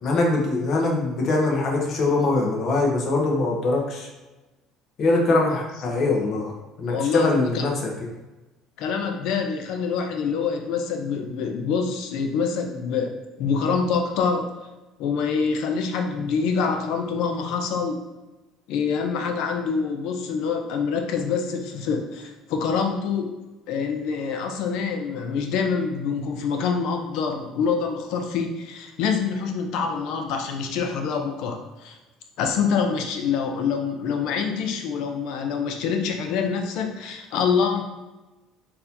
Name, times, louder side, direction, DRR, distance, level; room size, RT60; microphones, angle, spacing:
voice 1, 0.0-4.1 5.0-6.5 6.8-7.8, left 2 dB, 55° left, 0 dB, 0.9 m, -22 dB
voice 2, 6.9-7.6 8.8-14.6 15.0-18.0 18.7-23.3 23.7-32.0 32.4-37.8, left 5 dB, 70° left, 4 dB, 0.5 m, -26 dB
3.9 x 2.7 x 2.8 m, 1.1 s
supercardioid pair, 90°, 0 cm